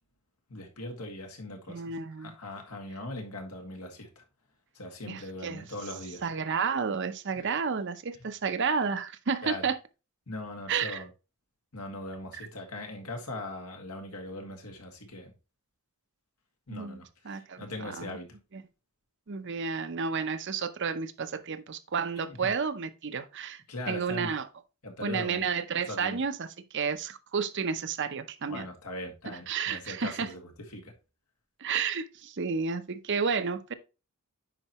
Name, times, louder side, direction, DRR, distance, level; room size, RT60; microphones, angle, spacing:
voice 1, 0.5-4.2 4.8-6.2 8.2-8.3 9.4-9.7 10.3-11.1 11.7-15.3 16.7-18.4 22.3-22.5 23.7-24.3 24.8-25.5 25.9-26.2 28.5-30.9, left 2 dB, 85° left, 1.9 m, -40 dB
voice 2, 1.7-2.4 5.1-5.6 6.2-9.8 10.7-11.0 16.7-17.0 17.2-17.6 18.0-18.1 18.5-18.6 19.3-24.5 25.0-26.5 26.7-28.7 29.5-30.3 31.6-33.7, right 5 dB, 55° right, 0.7 m, -31 dB
9.9 x 4.5 x 3.0 m
head